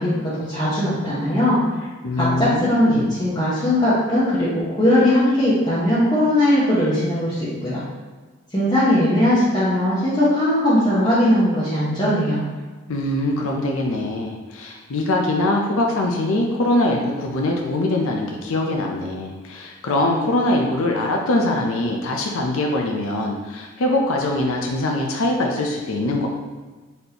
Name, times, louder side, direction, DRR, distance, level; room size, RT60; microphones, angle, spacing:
voice 1, 0.0-1.6 2.2-2.9 3.2-7.8 8.5-12.4, left 1 dB, 20° left, -12 dB, 0.9 m, -19 dB
voice 2, 2.0-3.1 12.9-26.3, left 1 dB, 70° left, 0 dB, 0.5 m, -22 dB
4.2 x 3.3 x 2.8 m, 1.3 s
head